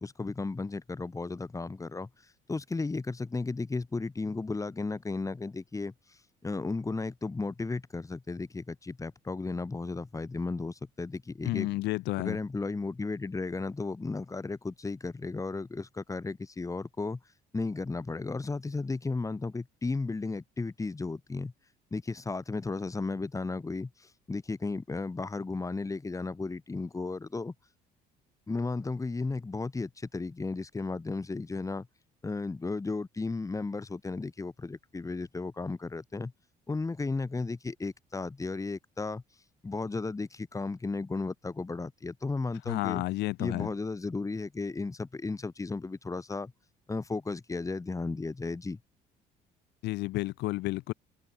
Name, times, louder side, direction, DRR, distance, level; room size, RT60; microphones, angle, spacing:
voice 1, 0.0-2.1 2.5-5.9 6.4-11.7 12.2-17.2 17.5-21.5 21.9-23.9 24.3-27.5 28.5-31.9 32.2-36.3 36.7-39.2 39.6-43.0 43.4-46.5 46.9-48.8, left 3 dB, 20° left, 5.1 m, -34 dB
voice 2, 11.4-12.4 42.7-43.7 49.8-50.9, left 19 dB, 85° left, 3.9 m, -31 dB
open air
cardioid pair, 110°, 17 cm